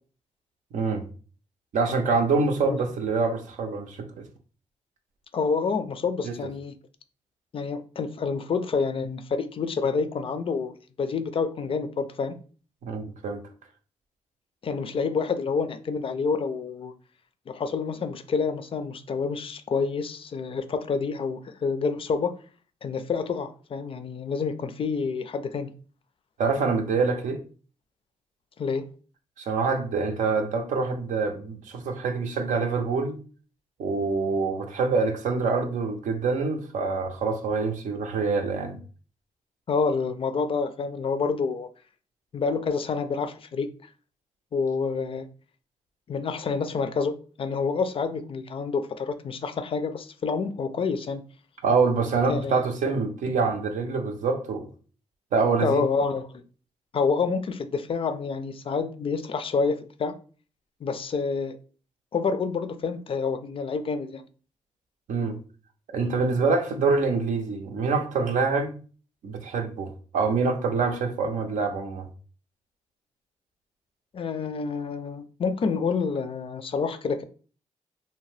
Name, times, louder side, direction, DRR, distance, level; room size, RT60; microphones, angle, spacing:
voice 1, 0.7-1.1 1.7-4.3 6.2-6.4 12.8-13.4 26.4-27.4 29.4-33.2 33.8-38.8 51.6-54.7 55.3-55.9 65.1-65.4 65.9-68.7 69.2-72.1, right 4 dB, 80° right, 0.5 m, -25 dB
voice 2, 5.3-6.7 7.5-12.3 14.6-16.9 17.5-22.3 22.8-25.7 28.6-28.9 39.7-41.7 42.3-43.7 44.5-45.3 46.1-51.2 52.3-52.6 55.6-56.4 56.9-60.1 60.8-61.6 62.1-64.2 74.1-77.2, left 5 dB, 45° left, 0.3 m, -28 dB
2.7 x 2.1 x 3.1 m
cardioid pair, 75°, 13 cm